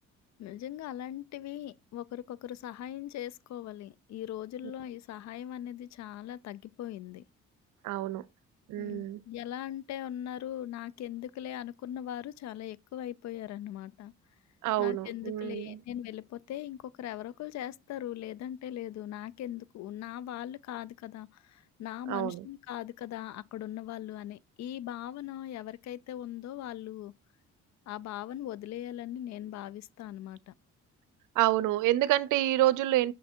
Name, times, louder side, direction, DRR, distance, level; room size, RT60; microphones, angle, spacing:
voice 1, 0.4-7.2 8.8-14.1 14.8-27.1 27.9-30.5, left 11 dB, 65° left, 0.4 m, -40 dB
voice 2, 7.8-8.2 8.7-9.2 14.6-15.8 22.1-22.5 31.4-33.1, right 15 dB, 85° right, 0.5 m, -27 dB
6.4 x 3.4 x 4.3 m
cardioid pair, 90°, 30 cm